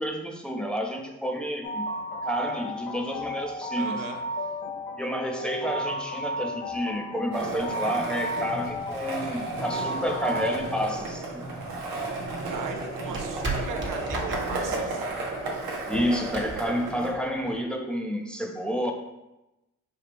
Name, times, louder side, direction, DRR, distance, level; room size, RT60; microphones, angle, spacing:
voice 1, 0.0-1.9 2.2-4.0 4.9-11.4 15.9-18.9, equal, 5° left, 2 dB, 0.7 m, -30 dB
sound 1, 1.6-10.6, equal, 75° left, 0.8 m, -34 dB
voice 2, 3.8-4.2 12.5-15.1, right 6 dB, 65° right, 4 dB, 0.5 m, -38 dB
Skateboard, 7.3-17.1, right 2 dB, 85° right, 1.0 m, -33 dB
sound 2, 11.7-17.6, right 2 dB, 35° right, 1.1 m, -37 dB
4.5 x 2.7 x 3.4 m, 0.97 s
supercardioid pair, 50°, 35 cm